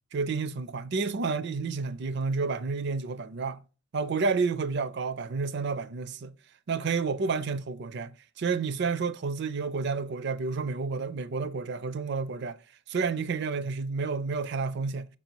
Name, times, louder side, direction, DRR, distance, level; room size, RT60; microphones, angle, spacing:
voice 1, 0.1-3.6 3.9-6.3 6.7-12.6 12.9-15.1, right 4 dB, 50° right, 0.4 m, -30 dB
6.2 x 4.0 x 4.5 m
head